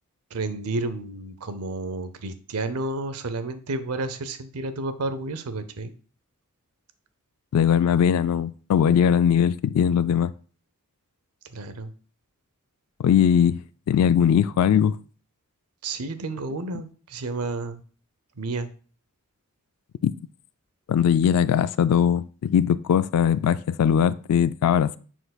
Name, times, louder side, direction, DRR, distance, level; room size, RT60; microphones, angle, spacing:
voice 1, 0.3-5.9 11.5-11.9 15.8-17.8 18.4-18.7, right 2 dB, 85° right, 0.7 m, -31 dB
voice 2, 7.5-10.3 13.0-13.6 13.9-15.0 20.0-20.1 20.9-25.0, left 8 dB, 85° left, 0.3 m, -20 dB
9.8 x 4.6 x 2.3 m
head